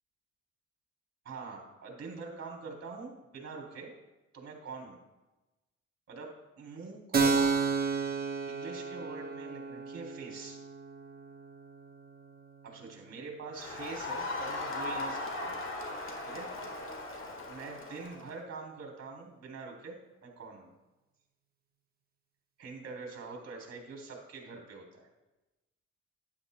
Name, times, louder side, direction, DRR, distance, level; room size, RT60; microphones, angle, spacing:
voice 1, 1.2-3.9 4.3-5.0 6.1-7.5 8.5-10.6 12.6-15.5 16.2-16.5 17.5-20.7 22.6-25.1, right 4 dB, 55° right, 2 dB, 3.2 m, -44 dB
Keyboard (musical), 7.1-14.4, right 4 dB, 30° right, 1.1 m, -33 dB
Crowd, 13.5-18.3, left 2 dB, 45° left, 1.6 m, -38 dB
12.0 x 10.5 x 2.2 m, 1.1 s
cardioid pair, 90°, 30 cm